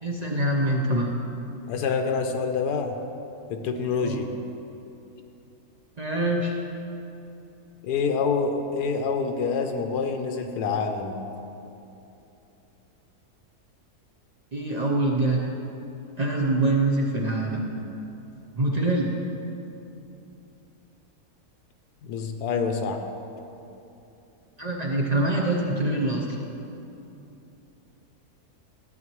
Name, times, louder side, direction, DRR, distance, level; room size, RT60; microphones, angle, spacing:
voice 1, 0.0-1.2 4.0-4.2 6.0-6.6 14.5-15.6 16.2-17.6 18.6-19.1 24.6-26.3, right 2 dB, 40° right, -2 dB, 0.6 m, -24 dB
voice 2, 1.7-3.0 3.5-4.3 7.8-11.2 22.0-23.0, left 5 dB, 90° left, 5 dB, 1.2 m, -27 dB
13.5 x 8.4 x 3.0 m, 2.9 s
omnidirectional pair, 1.7 m